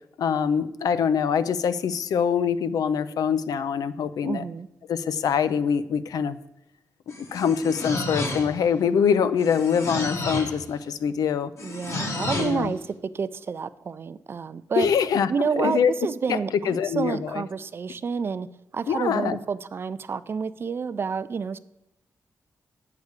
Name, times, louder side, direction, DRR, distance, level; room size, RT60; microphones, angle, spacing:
voice 1, 0.2-4.4 4.9-6.4 7.2-11.5 12.3-12.7 14.8-15.3 15.6-15.9 16.3-16.4 16.6-17.4 18.9-19.4, left 7 dB, 85° left, 14 dB, 0.4 m, -24 dB
voice 2, 4.2-4.7 11.6-14.9 15.3-18.5 18.7-21.6, right 5 dB, 40° right, 14 dB, 0.3 m, -29 dB
sound 1, 7.1-8.7 9.4-10.6 11.6-12.6, left 2 dB, 50° left, 1.1 m, -31 dB
8.3 x 4.9 x 6.5 m, 0.91 s
wide cardioid pair, 150°, 6 cm